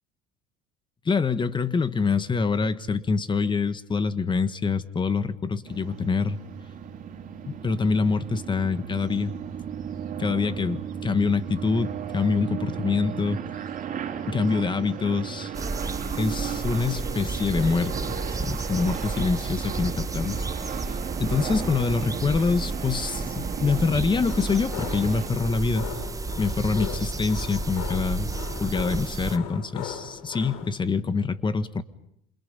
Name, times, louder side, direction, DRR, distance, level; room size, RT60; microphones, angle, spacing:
voice 1, 1.0-6.4 7.4-9.3 10.2-13.4 14.3-15.5 16.2-25.9 26.4-28.3 28.6-31.8, left 4 dB, 25° left, 12 dB, 1.6 m, -25 dB
sound 1, 5.6-25.3, right 8 dB, 45° right, 3.6 m, -35 dB
sound 2, 15.5-29.4, right 3 dB, 15° right, 1.2 m, -32 dB
sound 3, 24.3-30.7, left 9 dB, 85° left, 3.8 m, -39 dB
28.0 x 28.0 x 5.5 m, 0.75 s
supercardioid pair, 90°, 19 cm